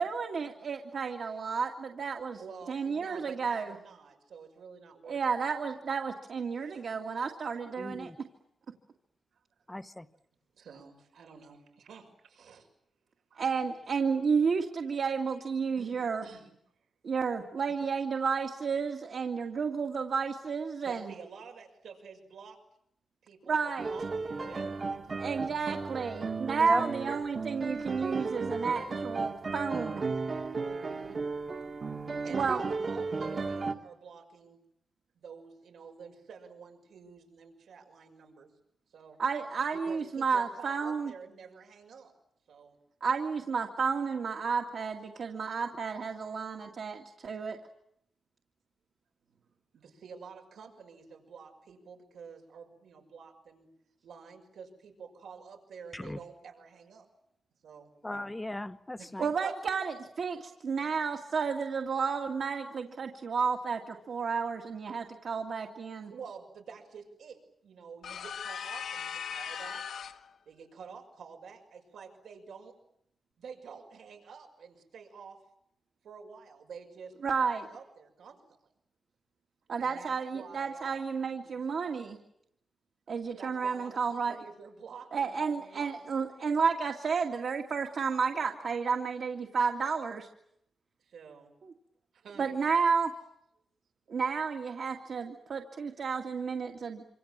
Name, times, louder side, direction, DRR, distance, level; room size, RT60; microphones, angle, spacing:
voice 1, 0.0-2.4 2.7-3.7 5.1-8.1 13.4-16.3 17.0-21.1 23.5-23.9 25.2-30.0 32.3-32.6 39.2-41.1 43.0-47.6 59.2-59.8 60.2-66.1 77.2-77.7 79.7-82.2 83.1-84.3 85.1-90.3 92.4-93.1 94.1-97.0, right 5 dB, 55° right, 2 dB, 2.2 m, -31 dB
voice 2, 2.4-5.2 5.5-5.7 6.5-6.9 9.3-9.4 10.5-12.7 13.3-13.5 15.8-16.5 20.8-22.6 23.2-25.9 30.5-31.2 32.2-34.6 35.1-38.5 38.9-39.2 39.7-42.1 42.5-42.8 49.7-53.7 54.0-57.1 57.6-57.9 59.0-59.6 66.1-69.9 70.5-72.8 73.4-75.4 76.0-78.7 79.8-82.0 83.3-86.1 91.0-91.5 92.1-92.5, right 6 dB, 85° right, 3 dB, 6.1 m, -49 dB
voice 3, 7.8-8.2 9.7-10.1 26.6-26.8 55.9-56.2 58.0-59.2, left 1 dB, 10° left, 10 dB, 1.0 m, -36 dB
sound 1, 23.8-33.8, right 4 dB, 35° right, 1.7 m, -35 dB
sound 2, 68.0-70.3, left 7 dB, 80° left, 1.9 m, -38 dB
27.0 x 26.5 x 7.5 m, 0.76 s
wide cardioid pair, 170°, 0 cm